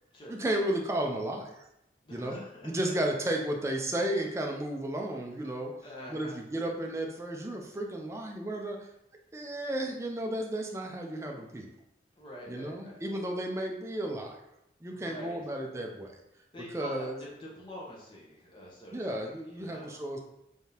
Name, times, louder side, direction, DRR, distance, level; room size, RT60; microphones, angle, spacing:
voice 1, 0.3-1.7 2.1-5.7 6.1-8.9 9.3-11.7 12.5-14.4 14.8-16.2 16.7-17.2 18.9-20.2, right 1 dB, 15° right, 2 dB, 0.4 m, -33 dB
voice 2, 2.0-2.9 5.8-6.4 12.2-13.2 14.8-15.4 16.5-20.0, left 1 dB, 30° left, -4 dB, 0.9 m, -46 dB
3.5 x 3.5 x 2.8 m, 0.84 s
head